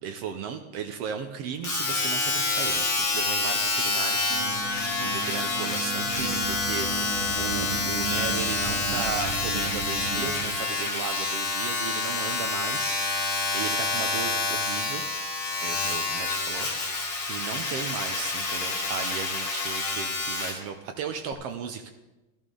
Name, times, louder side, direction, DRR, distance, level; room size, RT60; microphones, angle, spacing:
voice 1, 0.0-15.0 15.6-21.9, right 7 dB, 70° right, 6 dB, 1.6 m, -36 dB
Domestic sounds home sounds, 1.6-20.6 21.3-21.4, left 3 dB, 50° left, 3.0 m, -28 dB
sound 1, 4.3-10.4, right 4 dB, 30° right, 2.7 m, -34 dB
14.5 x 13.5 x 3.8 m, 1.0 s
omnidirectional pair, 3.3 m